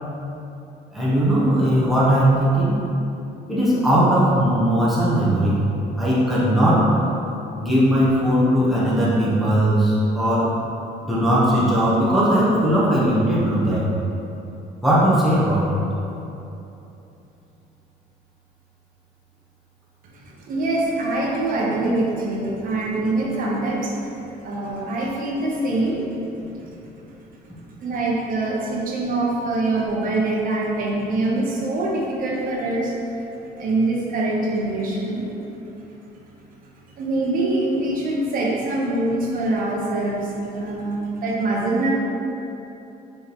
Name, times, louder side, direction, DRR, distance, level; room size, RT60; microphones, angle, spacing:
voice 1, 0.9-2.8 3.5-5.6 6.0-6.9 7.6-10.5 11.0-13.8 14.8-15.8, equal, ahead, -9 dB, 1.0 m, -18 dB
voice 2, 20.1-24.1 24.4-26.3 27.8-32.9 33.6-35.2 37.0-41.9, right 2 dB, 55° right, -3 dB, 0.8 m, -24 dB
4.3 x 3.5 x 3.0 m, 2.9 s
cardioid pair, 110°, 17 cm